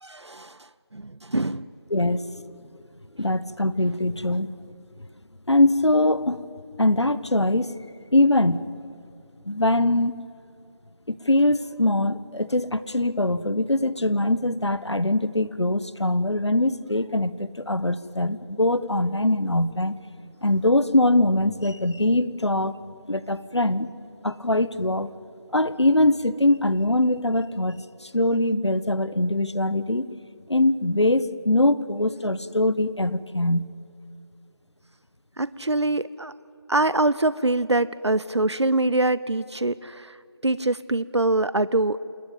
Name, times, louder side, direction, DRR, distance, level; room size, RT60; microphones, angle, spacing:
voice 1, 0.0-1.7 35.4-36.3 36.7-40.2 40.4-42.0, right 2 dB, 90° right, 17 dB, 0.8 m, -24 dB
voice 2, 1.9-2.5 3.2-4.5 5.5-6.5 6.8-7.8 8.1-8.7 9.5-10.1 11.1-19.9 20.4-22.7 23.1-23.9 24.2-25.1 25.5-30.1 30.5-33.7, left 1 dB, 85° left, 15 dB, 1.4 m, -22 dB
27.5 x 20.5 x 9.1 m, 2.5 s
figure-of-eight pair, 180°, 14 cm